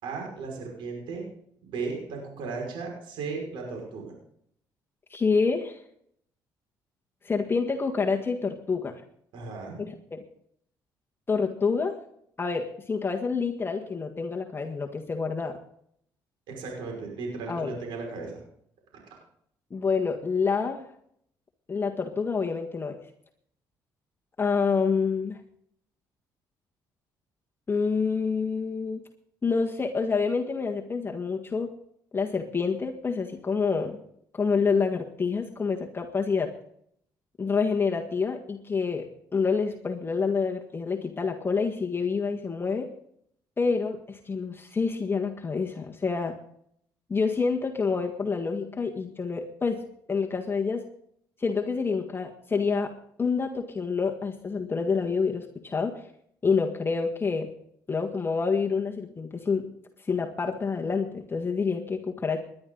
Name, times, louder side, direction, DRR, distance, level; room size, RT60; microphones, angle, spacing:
voice 1, 0.0-1.2 1.6-4.1 9.3-9.8 16.5-18.4, right 4 dB, 80° right, 0 dB, 5.5 m, -35 dB
voice 2, 5.1-5.8 7.2-9.0 9.9-10.2 11.3-11.9 12.4-15.6 17.5-17.8 19.7-20.8 21.7-23.0 24.4-25.4 27.7-29.0 29.4-31.7 32.1-34.0 34.3-36.5 37.4-42.9 43.6-46.4 47.1-49.8 50.1-50.8 51.4-52.9 53.2-56.0 56.4-57.5 57.9-59.7 60.1-62.4, left 5 dB, 25° left, 2 dB, 1.7 m, -27 dB
19.5 x 11.5 x 4.0 m, 0.69 s
cardioid pair, 85°, 8 cm